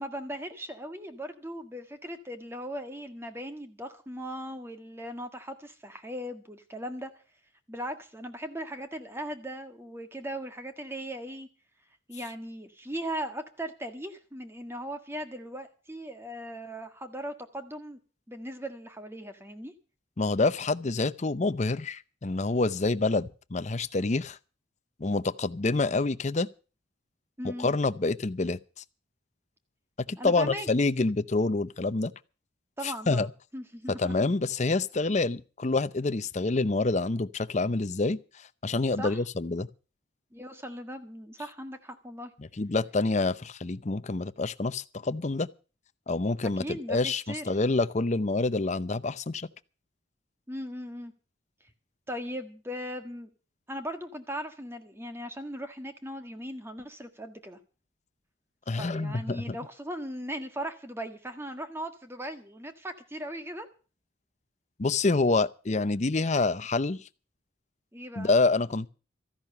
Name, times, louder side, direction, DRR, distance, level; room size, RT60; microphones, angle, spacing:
voice 1, 0.0-7.1 7.7-11.5 12.1-18.0 18.3-19.7 27.4-27.7 30.2-30.7 32.8-34.3 39.0-39.2 40.3-42.3 46.6-47.5 50.5-51.1 52.1-53.3 53.7-57.6 58.8-63.7 67.9-68.3, equal, 15° right, 1.6 m, -38 dB
voice 2, 20.2-24.4 25.0-26.5 27.4-28.6 30.1-32.1 32.8-33.3 33.9-38.2 38.6-39.7 42.6-45.5 46.1-49.5 58.7-59.6 64.8-67.0 68.2-68.9, left 3 dB, 35° left, 0.6 m, -27 dB
14.0 x 10.5 x 6.7 m
head